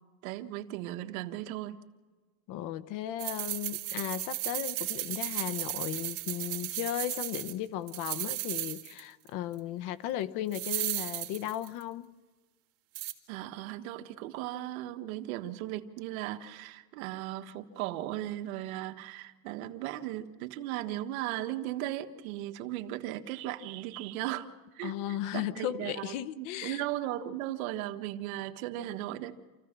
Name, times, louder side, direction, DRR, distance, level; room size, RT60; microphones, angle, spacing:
voice 1, 0.2-1.8 13.3-24.5 24.7-29.4, right 14 dB, 75° right, 7 dB, 1.5 m, -37 dB
voice 2, 2.5-12.1 24.8-26.8, left 12 dB, 50° left, 13 dB, 0.9 m, -36 dB
sound 1, 3.2-7.5 7.9-9.0 9.3-9.4 10.5-11.8 13.0-13.1, right 19 dB, 50° right, 2.6 m, -35 dB
28.0 x 15.5 x 6.0 m, 1.3 s
supercardioid pair, 155°, 43 cm